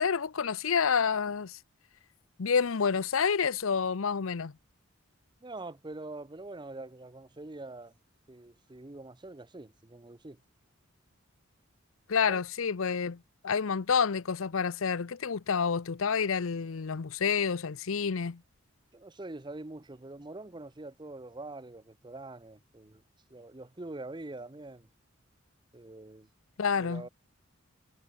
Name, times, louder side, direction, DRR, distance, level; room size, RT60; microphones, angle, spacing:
voice 1, 0.0-1.6 2.4-4.5 12.1-18.4 26.6-27.0, left 6 dB, 80° left, 0.6 m, -29 dB
voice 2, 5.4-7.9 8.3-10.4 12.3-12.4 18.9-23.0 23.3-24.9 25.7-26.3 26.8-27.1, right 2 dB, 20° right, 0.7 m, -44 dB
head